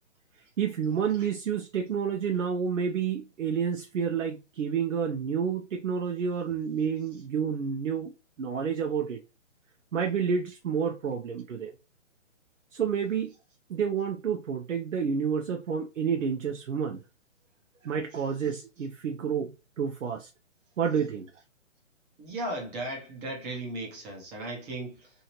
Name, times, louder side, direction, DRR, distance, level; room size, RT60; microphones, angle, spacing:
voice 1, 0.6-8.1 8.4-9.2 9.9-11.7 12.7-13.3 13.7-17.0 17.8-20.3 20.8-21.3, right 7 dB, 75° right, 0.7 m, -29 dB
voice 2, 22.2-25.1, right 1 dB, 20° right, 0.9 m, -36 dB
2.9 x 2.8 x 2.9 m
figure-of-eight pair, 140°, 38 cm